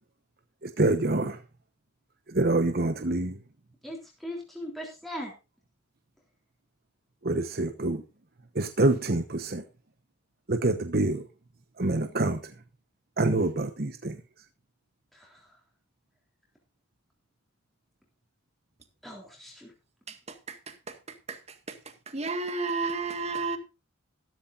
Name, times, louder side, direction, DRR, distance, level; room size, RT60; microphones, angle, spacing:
voice 1, 0.6-1.4 2.3-3.4 7.2-8.0 8.5-9.6 10.5-11.3 11.8-12.5 13.2-14.2, right 2 dB, 50° right, 1.0 m, -26 dB
voice 2, 3.8-5.3 15.1-15.4 19.0-19.7, equal, ahead, 3.3 m, -39 dB
voice 3, 20.1-21.8 22.1-23.6, right 3 dB, 30° right, 1.9 m, -33 dB
14.0 x 13.5 x 2.6 m
head